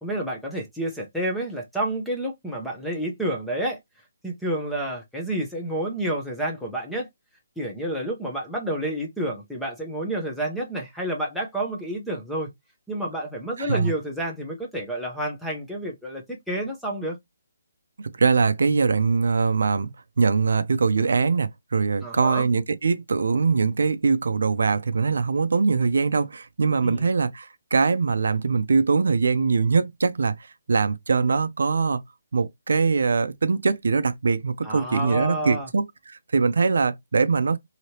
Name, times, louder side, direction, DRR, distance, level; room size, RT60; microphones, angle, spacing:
voice 1, 0.0-3.8 4.2-7.1 7.6-12.5 12.9-17.2 22.0-22.5 26.8-27.1 34.6-35.7, right 1 dB, ahead, 0.7 m, -29 dB
voice 2, 13.6-13.9 18.2-19.9 20.2-30.3 30.7-32.0 32.3-37.6, right 4 dB, 70° right, 0.5 m, -22 dB
3.2 x 2.8 x 2.8 m
hypercardioid pair, 170°, 0 cm